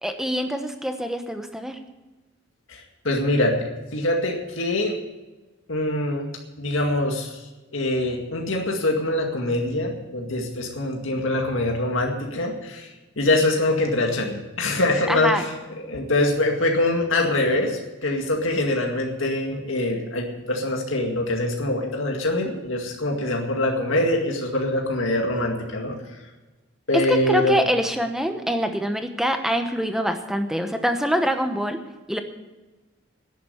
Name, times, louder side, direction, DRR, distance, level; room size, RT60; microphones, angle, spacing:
voice 1, 0.0-1.8 15.1-15.4 26.9-31.8 32.1-32.2, equal, ahead, 7 dB, 0.9 m, -24 dB
voice 2, 2.7-4.9 5.7-6.3 6.6-7.4 7.7-12.9 13.2-15.4 15.9-26.0 26.9-27.6, left 1 dB, 80° left, 1 dB, 2.1 m, -24 dB
11.0 x 10.5 x 8.5 m, 1.1 s
head